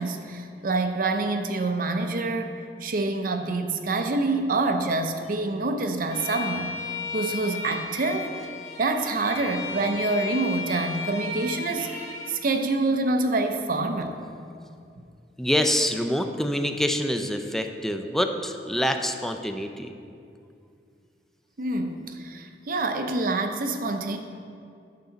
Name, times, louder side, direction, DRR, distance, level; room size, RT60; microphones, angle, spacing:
voice 1, 0.0-2.5 2.8-6.8 7.1-8.3 8.8-11.9 12.3-14.2 21.6-24.2, right 2 dB, 55° right, 6 dB, 0.6 m, -26 dB
Bowed string instrument, 6.1-12.4, left 4 dB, 45° left, 1.1 m, -35 dB
voice 2, 15.4-19.9, equal, ahead, 5 dB, 0.4 m, -26 dB
9.3 x 6.2 x 3.9 m, 2.4 s
head